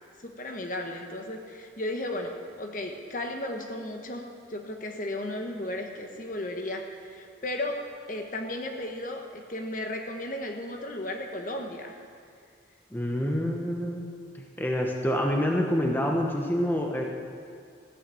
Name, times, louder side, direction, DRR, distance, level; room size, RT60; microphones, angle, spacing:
voice 1, 0.2-12.0, left 1 dB, 45° left, 3 dB, 1.2 m, -35 dB
voice 2, 12.9-14.0 14.3-17.1, equal, 10° left, 1 dB, 1.0 m, -27 dB
15.0 x 8.8 x 7.6 m, 2.2 s
head